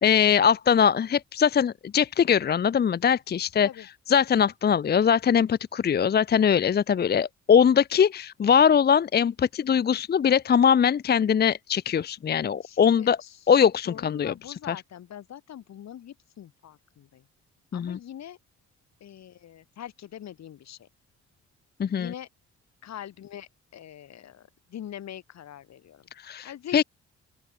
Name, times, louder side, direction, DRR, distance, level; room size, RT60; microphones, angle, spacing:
voice 1, 0.0-3.7 4.1-13.2 13.5-14.3 14.7-14.8 17.7-18.0 21.8-22.1 26.2-26.8, left 7 dB, 35° left, 0.6 m, -21 dB
voice 2, 12.6-13.4 13.9-17.3 17.7-18.4 19.0-20.9 22.0-22.3 22.8-26.1 26.4-26.8, left 10 dB, 60° left, 1.9 m, -42 dB
open air
cardioid pair, 90°, 30 cm